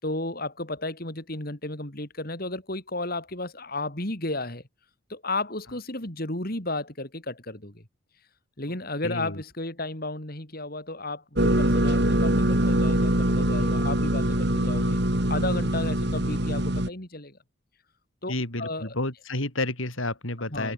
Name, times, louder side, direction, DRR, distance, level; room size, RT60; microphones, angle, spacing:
voice 1, 0.0-4.6 5.1-7.8 8.6-15.0 15.3-17.4 18.2-18.3 18.6-19.0 20.5-20.7, left 2 dB, 45° left, 3.8 m, -33 dB
voice 2, 9.0-9.4 18.3-20.7, left 2 dB, 70° left, 5.1 m, -30 dB
sound 1, 11.4-16.9, right 1 dB, 50° right, 3.8 m, -23 dB
head